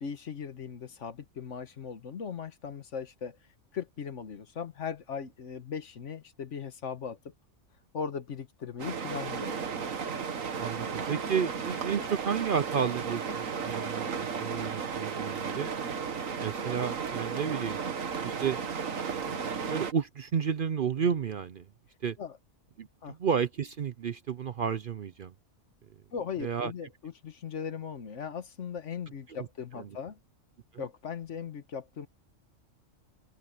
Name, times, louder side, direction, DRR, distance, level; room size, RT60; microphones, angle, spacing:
voice 1, 0.0-3.4 3.7-7.3 7.9-9.6 22.2-22.4 23.0-23.2 26.1-30.2 30.8-32.1, left 6 dB, 65° left, 1.5 m, -38 dB
sound 1, 8.8-19.9, right 6 dB, 85° right, 1.8 m, -34 dB
voice 2, 10.6-15.7 16.4-17.8 18.2-18.6 19.7-21.7 22.0-22.2 22.8-25.3 26.4-26.7 29.3-29.4 29.7-29.9, right 7 dB, 55° right, 0.7 m, -32 dB
open air
omnidirectional pair, 1.3 m